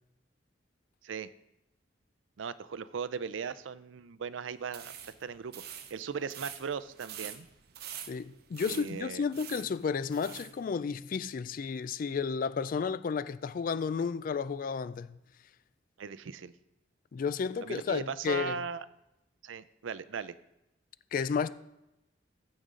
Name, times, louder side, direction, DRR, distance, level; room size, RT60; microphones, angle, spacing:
voice 1, 2.4-4.9 5.2-5.5 5.9-7.5 8.6-9.2 16.0-16.5 17.6-18.8 19.4-20.3, right 6 dB, 80° right, 0.5 m, -38 dB
sound 1, 4.6-10.6, right 9 dB, 55° right, 0.8 m, -46 dB
voice 2, 8.1-15.2 17.1-18.6 21.1-21.5, left 5 dB, 45° left, 0.3 m, -32 dB
15.0 x 5.3 x 3.8 m
head